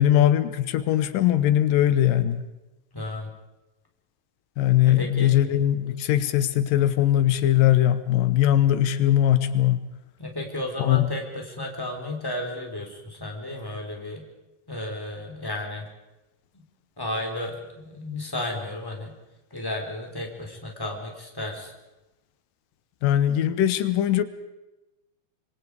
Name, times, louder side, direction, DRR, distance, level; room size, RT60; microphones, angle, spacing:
voice 1, 0.0-2.4 4.6-9.8 10.8-11.1 23.0-24.2, left 12 dB, 85° left, 12 dB, 2.7 m, -20 dB
voice 2, 2.9-3.3 4.8-5.4 10.2-14.2 14.7-15.9 16.5-16.6 17.0-19.1 19.5-21.7, left 1 dB, 5° left, 1 dB, 3.4 m, -33 dB
26.0 x 24.0 x 4.8 m, 1.0 s
omnidirectional pair, 3.8 m